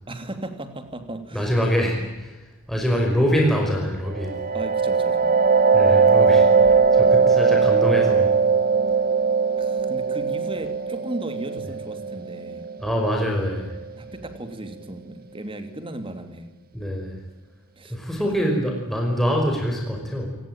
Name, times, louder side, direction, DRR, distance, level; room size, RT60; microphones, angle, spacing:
voice 1, 0.1-1.5 4.5-5.4 9.6-12.7 14.0-16.5 17.8-18.0, right 1 dB, 25° right, 8 dB, 2.9 m, -36 dB
voice 2, 1.3-2.4 2.7-4.4 5.7-8.3 12.8-13.7 16.7-17.2 17.9-20.3, equal, ahead, 0 dB, 5.6 m, -24 dB
sound 1, 4.1-13.6, right 5 dB, 45° right, 1.6 m, -19 dB
27.5 x 19.5 x 9.0 m, 1.1 s
head